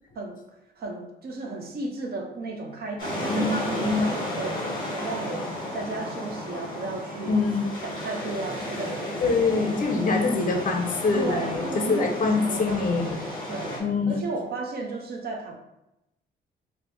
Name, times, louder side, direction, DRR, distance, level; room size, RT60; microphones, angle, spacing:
voice 1, 0.8-4.6 4.9-7.4 7.8-9.1 9.6-9.8 11.1-13.8 14.1-15.5, right 2 dB, 50° right, 2 dB, 0.7 m, -34 dB
sound 1, 3.0-13.8, left 1 dB, 25° left, 1.3 m, -33 dB
voice 2, 3.3-4.0 7.3-7.9 9.2-13.2 13.8-14.3, left 3 dB, 45° left, 3 dB, 0.6 m, -25 dB
3.5 x 2.1 x 3.0 m, 0.88 s
cardioid pair, 90°, 20 cm